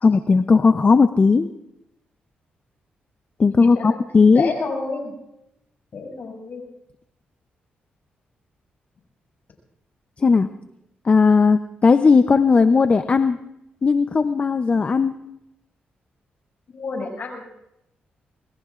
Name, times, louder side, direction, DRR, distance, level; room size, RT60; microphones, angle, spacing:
voice 1, 0.0-1.5 3.4-4.5 10.2-10.5 11.0-13.4 13.8-15.1, left 4 dB, 35° left, 9 dB, 0.6 m, -16 dB
voice 2, 4.3-5.1 5.9-6.6 16.7-17.4, left 4 dB, 60° left, 1 dB, 6.4 m, -29 dB
27.0 x 21.5 x 2.5 m, 0.84 s
cardioid pair, 85°, 4 cm